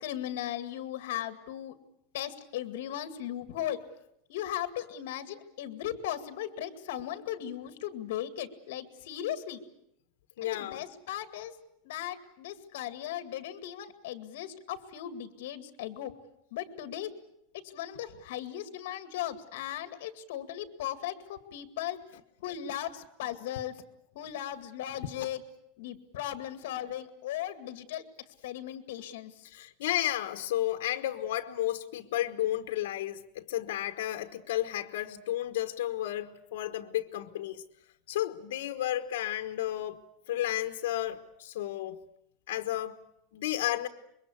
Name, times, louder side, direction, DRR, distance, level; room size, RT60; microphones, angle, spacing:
voice 1, 0.0-1.7 2.1-3.8 4.3-9.6 10.4-11.5 11.8-16.1 16.5-17.1 17.5-22.0 22.4-23.8 24.1-25.4 25.8-28.0 28.4-29.3, left 11 dB, 65° left, 2.1 m, -37 dB
voice 2, 10.4-10.8 29.4-37.6 38.1-40.0 40.3-42.0 42.5-42.9 43.3-43.9, left 13 dB, 85° left, 1.3 m, -32 dB
25.5 x 22.5 x 8.2 m
supercardioid pair, 180°, 0 cm